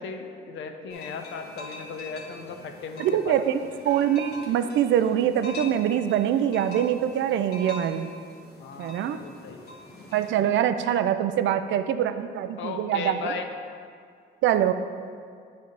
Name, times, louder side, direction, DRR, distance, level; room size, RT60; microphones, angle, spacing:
voice 1, 0.0-3.4 8.6-9.6 12.6-13.5, left 5 dB, 75° left, 5 dB, 0.6 m, -36 dB
sound 1, 0.9-10.3, left 1 dB, 55° left, 1.3 m, -43 dB
voice 2, 3.0-3.6 3.8-8.1 8.8-9.2 10.1-13.3 14.4-14.7, right 10 dB, 75° right, 10 dB, 0.4 m, -24 dB
9.4 x 3.4 x 5.1 m, 2.2 s
cardioid pair, 90°, 20 cm